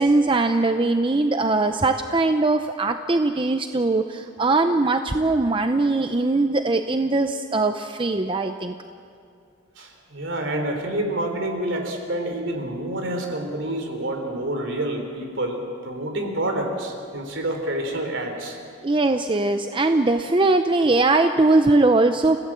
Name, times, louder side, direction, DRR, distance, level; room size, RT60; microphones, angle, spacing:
voice 1, 0.0-8.7 18.8-22.4, right 2 dB, 25° right, 7 dB, 0.6 m, -20 dB
voice 2, 9.8-18.6, right 1 dB, 60° right, 4 dB, 3.6 m, -28 dB
29.5 x 16.0 x 7.6 m, 2.4 s
head